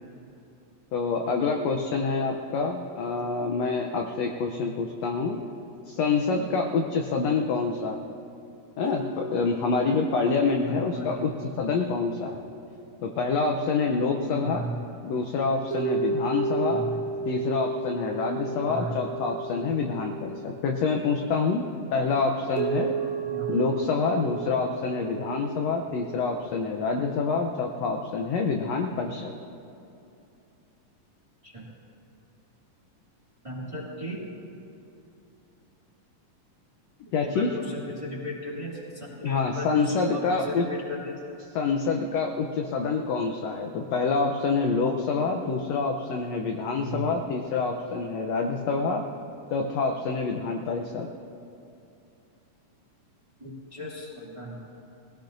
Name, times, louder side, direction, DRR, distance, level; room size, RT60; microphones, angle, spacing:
voice 1, 0.9-5.4 5.9-8.1 8.8-11.3 11.6-12.4 13.0-14.6 15.0-16.8 17.2-21.6 21.9-22.9 23.5-29.3 37.1-37.5 39.2-40.6 41.5-49.1 49.5-51.1, left 4 dB, 75° left, 2 dB, 1.5 m, -27 dB
sound 1, 8.8-14.3 15.7-21.1 22.6-26.4, right 4 dB, 70° right, 0.5 m, -34 dB
voice 2, 10.6-11.4 14.3-14.8 16.7-17.0 18.7-19.0 23.2-23.5 31.4-31.6 33.4-34.3 37.2-41.2 46.8-47.1 53.4-54.6, equal, 10° right, -6 dB, 1.9 m, -36 dB
21.5 x 17.0 x 2.6 m, 2.7 s
omnidirectional pair, 3.8 m